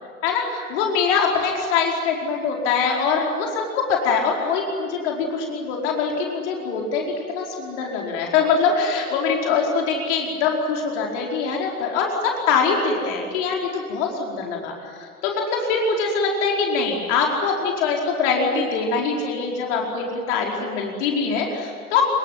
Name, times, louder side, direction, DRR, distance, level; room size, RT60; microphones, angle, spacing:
voice 1, 0.2-14.7 15.0-22.0, left 5 dB, 50° left, -1 dB, 4.9 m, -23 dB
26.5 x 24.5 x 9.3 m, 2.1 s
figure-of-eight pair, 90°, 44 cm